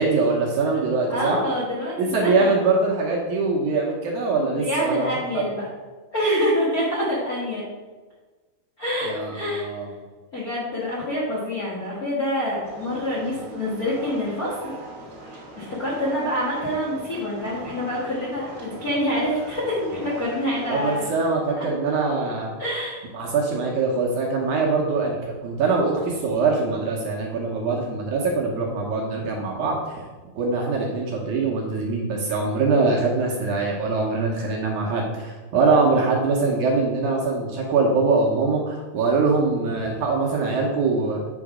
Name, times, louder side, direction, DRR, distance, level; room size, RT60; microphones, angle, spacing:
voice 1, 0.0-1.4 2.0-5.5 9.0-9.9 20.7-22.5 23.1-30.0 30.4-41.2, right 3 dB, 70° right, -1 dB, 2.0 m, -23 dB
voice 2, 1.1-2.5 4.5-5.7 6.1-7.7 8.8-9.7 10.3-14.7 15.6-21.0 21.6-21.7 22.6-23.0, equal, 90° left, -7 dB, 0.8 m, -26 dB
sound 1, 12.6-21.3, right 2 dB, 50° right, 1.1 m, -41 dB
8.1 x 3.8 x 4.9 m, 1.3 s
omnidirectional pair, 4.4 m